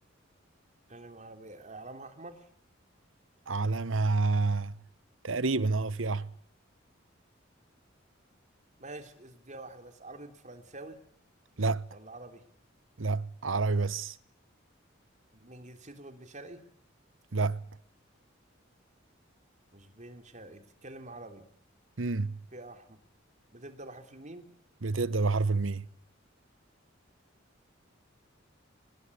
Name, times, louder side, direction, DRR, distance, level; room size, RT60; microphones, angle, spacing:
voice 1, 0.9-2.5 8.8-11.0 11.9-12.4 15.3-16.6 19.7-21.5 22.5-23.0 23.5-24.5, right 2 dB, 35° right, 3.3 m, -47 dB
voice 2, 3.5-4.7 5.2-6.3 11.6-11.8 13.0-14.1 17.3-17.6 22.0-22.4 24.8-25.9, right 3 dB, 75° right, 1.0 m, -28 dB
24.5 x 21.5 x 8.5 m
head